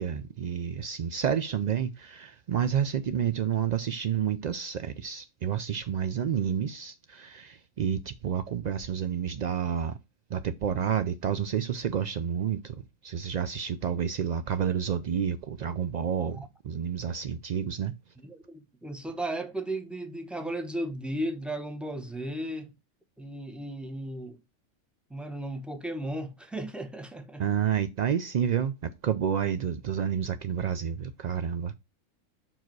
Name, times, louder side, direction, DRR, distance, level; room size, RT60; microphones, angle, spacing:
voice 1, 0.0-10.0 10.3-17.9 27.4-31.7, right 8 dB, 85° right, 0.3 m, -30 dB
voice 2, 18.2-22.7 23.2-24.4 25.1-27.5, right 1 dB, ahead, 0.9 m, -35 dB
5.8 x 4.8 x 4.5 m
omnidirectional pair, 1.3 m